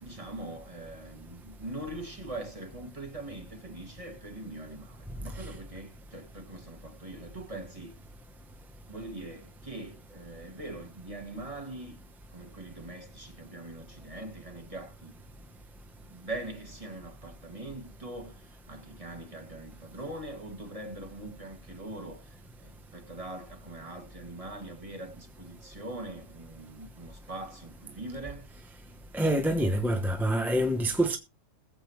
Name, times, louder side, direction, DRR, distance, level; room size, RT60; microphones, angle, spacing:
voice 1, 0.0-7.9 8.9-12.0 12.3-15.1 16.0-28.5, right 2 dB, 30° right, 2.2 m, -42 dB
voice 2, 29.1-31.2, right 1 dB, ahead, 0.8 m, -26 dB
20.5 x 7.8 x 3.1 m
omnidirectional pair, 1.3 m